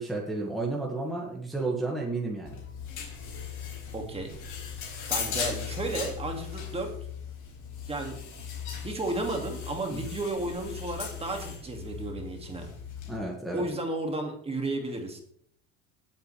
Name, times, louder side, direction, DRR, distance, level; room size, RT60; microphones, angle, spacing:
voice 1, 0.0-2.5 9.9-10.1 13.1-13.6, right 2 dB, ahead, -3 dB, 1.9 m, -32 dB
sound 1, 2.5-13.2, left 7 dB, 50° left, 4.7 m, -38 dB
voice 2, 3.9-4.4 5.1-6.9 7.9-8.2 8.8-12.7 13.5-15.2, right 2 dB, 15° right, 3 dB, 2.3 m, -33 dB
18.5 x 8.7 x 3.4 m, 0.63 s
cardioid pair, 145°, 39 cm